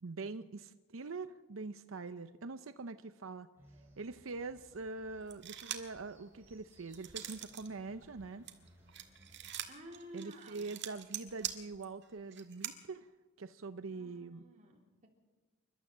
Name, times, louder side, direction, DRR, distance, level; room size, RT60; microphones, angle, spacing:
voice 1, 0.0-3.5 4.0-8.5 10.1-13.1 13.4-14.4, right 3 dB, 90° right, 10 dB, 0.7 m, -44 dB
sound 1, 3.6-9.7, equal, 10° right, 5.4 m, -64 dB
sound 2, 5.3-6.0 6.4-7.7 8.0-12.7, right 11 dB, 60° right, 1.8 m, -43 dB
voice 2, 9.7-10.7 13.9-15.1, right 1 dB, 40° right, 0 dB, 3.6 m, -52 dB
28.5 x 12.5 x 7.5 m, 1.3 s
head